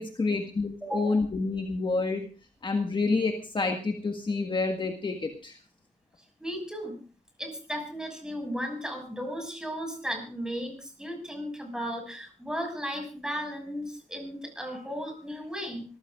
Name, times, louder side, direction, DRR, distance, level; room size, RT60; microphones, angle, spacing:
voice 1, 0.0-2.3 2.6-5.6, left 3 dB, 40° left, 4 dB, 1.6 m, -28 dB
voice 2, 0.8-1.2 6.4-7.0 7.4-15.8, equal, 5° right, 4 dB, 6.3 m, -35 dB
25.0 x 14.5 x 2.5 m, 0.35 s
cardioid pair, 85°, 13 cm